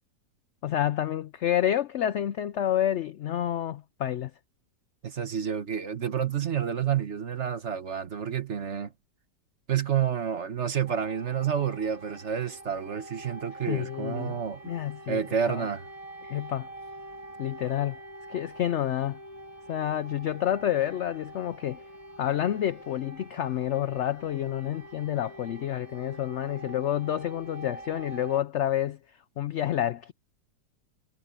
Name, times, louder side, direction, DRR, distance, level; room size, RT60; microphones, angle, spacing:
voice 1, 0.6-4.3 13.7-14.4 14.6-15.2 15.5-15.6 16.2-16.7 17.4-18.0 18.3-19.2 19.7-21.8 22.2-29.0 29.4-30.1, left 11 dB, 75° left, 0.6 m, -29 dB
voice 2, 5.0-8.9 9.7-14.7 15.1-15.8, right 8 dB, 45° right, 1.4 m, -29 dB
sound 1, 10.9-28.4, right 1 dB, 20° right, 6.4 m, -45 dB
omnidirectional pair, 1.8 m